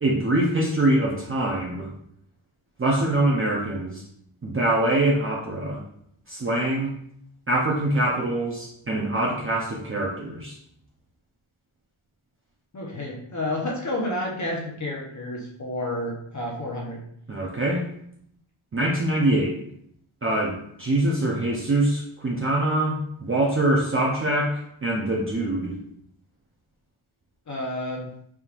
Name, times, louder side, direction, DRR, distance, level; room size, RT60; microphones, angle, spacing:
voice 1, 0.0-1.9 2.8-4.0 4.4-5.8 6.3-6.9 7.5-10.5 17.3-17.8 18.7-19.6 20.2-25.7, right 1 dB, 25° right, -4 dB, 0.7 m, -24 dB
voice 2, 12.7-17.0 27.5-28.1, left 1 dB, 35° left, -2 dB, 0.9 m, -30 dB
4.3 x 3.6 x 2.5 m, 0.71 s
cardioid pair, 80°, 49 cm